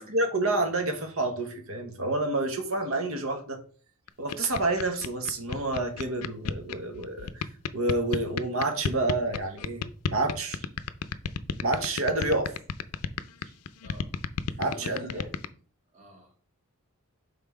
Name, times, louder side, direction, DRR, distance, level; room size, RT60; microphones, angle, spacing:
voice 1, 0.0-3.6 4.2-7.5 7.7-10.6 11.6-12.5 14.6-15.3, right 2 dB, 65° right, 6 dB, 1.2 m, -29 dB
sound 1, 4.1-15.5, left 7 dB, 85° left, 0.5 m, -29 dB
voice 2, 13.8-14.1 14.5-15.4 15.9-16.4, equal, 35° right, 1 dB, 1.6 m, -47 dB
5.6 x 3.8 x 4.8 m, 0.42 s
head